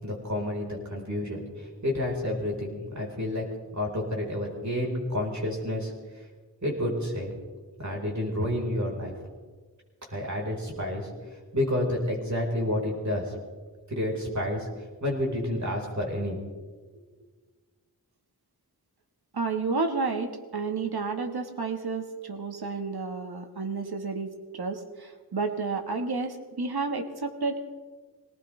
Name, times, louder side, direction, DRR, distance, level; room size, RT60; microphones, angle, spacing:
voice 1, 0.0-3.5 3.7-5.9 6.6-7.3 7.8-9.1 10.1-13.3 13.9-16.4, left 1 dB, 50° right, -1 dB, 4.3 m, -30 dB
voice 2, 19.3-27.7, right 4 dB, 80° right, 6 dB, 1.5 m, -31 dB
22.5 x 18.5 x 3.3 m, 1.4 s
wide cardioid pair, 55°, 37 cm